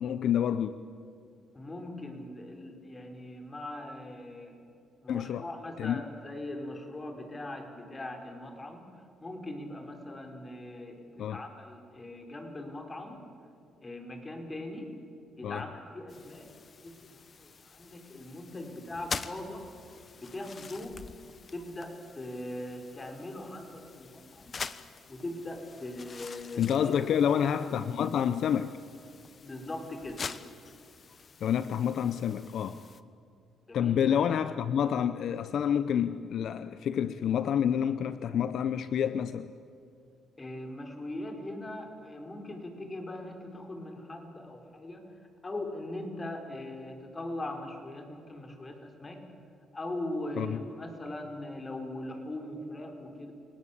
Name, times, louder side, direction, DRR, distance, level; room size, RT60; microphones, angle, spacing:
voice 1, 0.0-0.7 5.1-5.5 5.8-6.0 11.2-11.4 15.4-15.7 26.6-28.7 31.4-32.8 33.7-39.5 50.4-50.6, left 8 dB, 70° left, 13 dB, 0.7 m, -28 dB
voice 2, 1.5-4.5 5.0-8.9 9.2-13.2 13.8-14.9 15.4-16.5 16.8-19.6 20.2-21.0 21.5-24.5 25.1-27.0 29.4-30.3 33.7-34.0 40.4-45.1 45.4-49.2 49.7-53.3, left 1 dB, 25° left, 4 dB, 4.7 m, -40 dB
sound 1, 16.1-33.0, left 5 dB, 40° left, 1.1 m, -45 dB
29.5 x 19.0 x 8.5 m, 2.5 s
cardioid pair, 90°, 0 cm